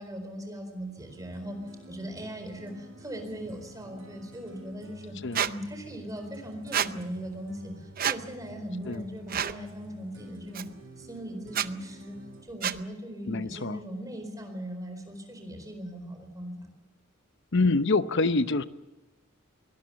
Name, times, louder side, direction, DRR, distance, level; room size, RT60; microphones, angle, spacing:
voice 1, 0.0-1.6 1.9-5.1 5.4-10.6 11.0-12.2 12.4-16.7, equal, 15° right, 5 dB, 4.4 m, -39 dB
sound 1, 1.0-12.4, right 1 dB, 70° right, 7.1 m, -50 dB
Squeak, 5.3-5.5 6.7-6.9 8.0-8.2 9.3-9.6 10.5-10.6 11.5-11.7 12.6-12.8, right 9 dB, 45° right, 0.7 m, -28 dB
voice 2, 13.3-13.8 17.5-18.6, left 3 dB, 60° left, 13 dB, 0.8 m, -25 dB
23.5 x 19.0 x 7.0 m, 1.1 s
head